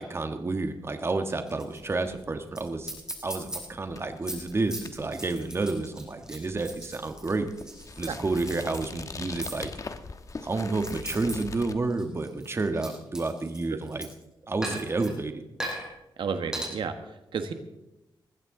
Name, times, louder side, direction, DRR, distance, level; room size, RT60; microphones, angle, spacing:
voice 1, 0.0-2.9 3.2-7.5 8.0-9.7 10.4-14.1 14.5-15.4, right 3 dB, 30° right, 7 dB, 1.4 m, -30 dB
sound 1, 1.3-1.8 2.1-2.2 2.6-2.7 2.8-3.6 4.0-8.1 8.4-8.8 9.4-9.6 10.3-11.3 11.7-14.2 14.6-15.1 15.6-15.9 16.5-16.7, right 1 dB, 10° right, 6.4 m, -37 dB
sound 2, 1.8-11.8, left 4 dB, 40° left, 1.2 m, -43 dB
voice 2, 16.2-17.5, right 6 dB, 80° right, 7 dB, 1.5 m, -32 dB
20.5 x 15.0 x 3.8 m, 0.93 s
wide cardioid pair, 105°, 8 cm